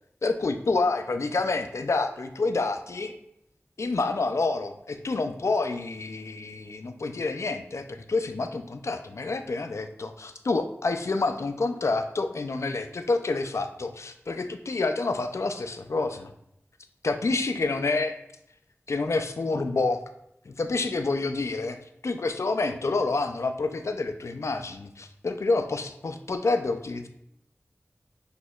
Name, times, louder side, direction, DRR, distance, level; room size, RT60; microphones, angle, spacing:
voice 1, 0.2-3.1 3.8-16.3 17.0-18.2 18.9-20.0 20.5-27.1, left 3 dB, 75° left, 7 dB, 0.4 m, -28 dB
6.1 x 2.9 x 2.3 m, 0.78 s
wide cardioid pair, 50°, 5 cm